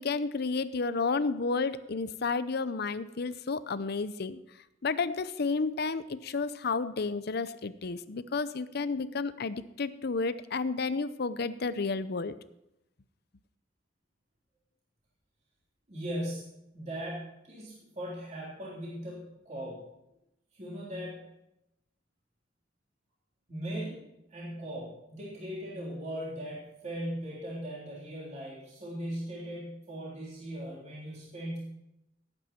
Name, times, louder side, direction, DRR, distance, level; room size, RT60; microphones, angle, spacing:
voice 1, 0.0-4.4 4.8-12.3, left 4 dB, 55° left, 14 dB, 0.6 m, -31 dB
voice 2, 15.9-19.8 20.5-21.2 23.5-31.6, equal, 40° right, -6 dB, 3.5 m, -39 dB
17.5 x 9.0 x 4.4 m, 0.85 s
head